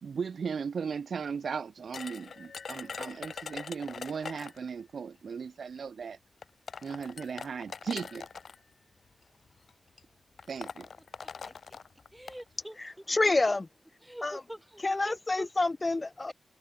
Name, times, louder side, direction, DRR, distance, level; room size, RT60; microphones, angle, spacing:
voice 1, 0.0-6.2 6.8-8.3 10.5-10.9, right 6 dB, 80° right, 0.7 m, -37 dB
sound 1, 1.9-4.7 5.8-5.9 6.4-8.6 9.5-9.7 10.0-10.1 10.4-12.4, left 5 dB, 75° left, 6.1 m, -42 dB
voice 2, 11.1-11.5 12.1-13.0 14.0-15.5, equal, 5° right, 2.9 m, -45 dB
voice 3, 13.1-13.7 14.2-14.4 14.8-16.3, left 2 dB, 35° left, 0.6 m, -27 dB
wide cardioid pair, 80°, 0 cm